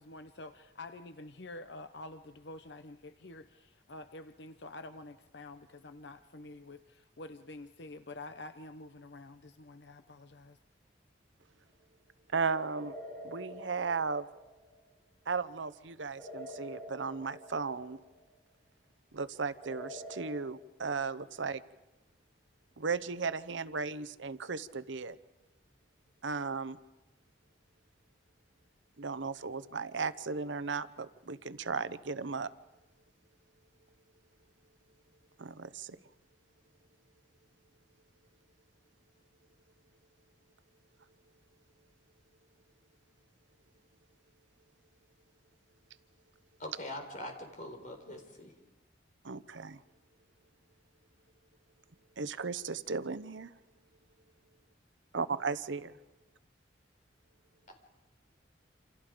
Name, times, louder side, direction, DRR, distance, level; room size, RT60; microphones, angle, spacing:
voice 1, 0.0-10.6, left 2 dB, 65° left, 10 dB, 0.9 m, -48 dB
voice 2, 12.3-12.9 13.2-14.3 15.3-18.0 19.1-21.6 22.8-25.2 26.2-26.8 29.0-32.5 35.4-36.0 49.2-49.8 52.2-53.5 55.1-55.9, right 4 dB, 85° right, 14 dB, 0.9 m, -35 dB
sound 1, 12.7-14.8 16.2-18.2 19.6-20.3, left 1 dB, 10° left, 7.4 m, -47 dB
voice 3, 46.6-48.5, left 1 dB, 45° left, 4 dB, 4.3 m, -43 dB
28.0 x 27.5 x 5.1 m, 1.1 s
head